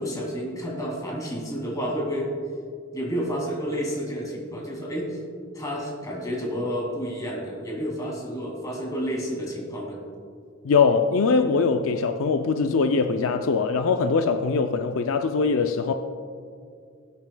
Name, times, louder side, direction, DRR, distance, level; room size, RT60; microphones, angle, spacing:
voice 1, 0.0-2.3 2.9-5.2 5.5-10.0, equal, 15° left, 2.3 m, -30 dB
voice 2, 10.6-15.9, left 4 dB, 70° left, 0.4 m, -22 dB
18.0 x 9.1 x 2.3 m
head